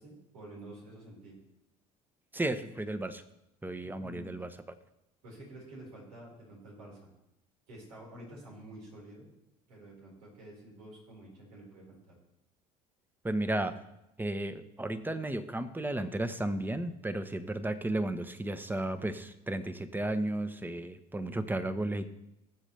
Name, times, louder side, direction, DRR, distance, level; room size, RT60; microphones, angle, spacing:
voice 1, 0.0-1.4 3.7-4.4 5.2-7.1 7.7-9.3 9.7-12.2, right 1 dB, 85° right, -4 dB, 5.1 m, -49 dB
voice 2, 2.3-3.2 3.6-4.5 13.2-13.7 14.2-22.1, right 1 dB, 10° right, 11 dB, 1.1 m, -33 dB
19.5 x 7.4 x 3.4 m, 0.87 s
hypercardioid pair, 75°, 19 cm